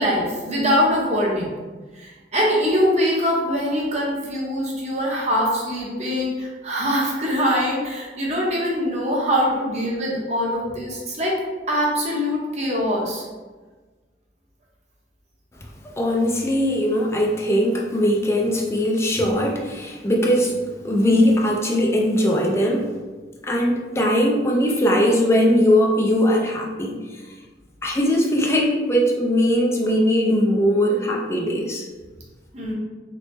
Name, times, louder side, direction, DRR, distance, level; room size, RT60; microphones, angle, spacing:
voice 1, 0.0-1.5 2.0-11.4 11.7-13.2 32.5-32.7, equal, 40° right, -3 dB, 0.7 m, -23 dB
voice 2, 16.0-20.5 20.8-22.9 23.4-27.2 27.8-31.8, equal, 15° left, -1 dB, 0.3 m, -20 dB
3.2 x 2.0 x 3.1 m, 1.3 s
head